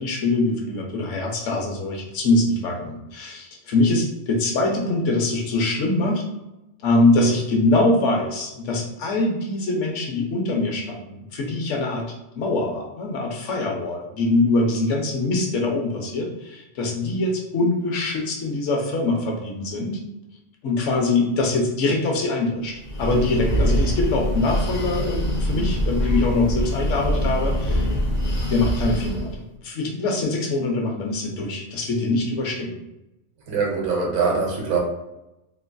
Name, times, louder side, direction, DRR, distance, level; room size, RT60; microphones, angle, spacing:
voice 1, 0.0-6.2 6.8-12.0 12.3-20.0 20.6-27.8 28.5-29.3 29.6-32.8, left 2 dB, 80° left, 0 dB, 1.0 m, -23 dB
Breathing, 22.7-29.4, equal, 50° left, 0.7 m, -24 dB
voice 2, 33.5-34.8, right 4 dB, 80° right, -2 dB, 1.1 m, -23 dB
3.0 x 2.5 x 2.2 m, 0.91 s
omnidirectional pair, 1.2 m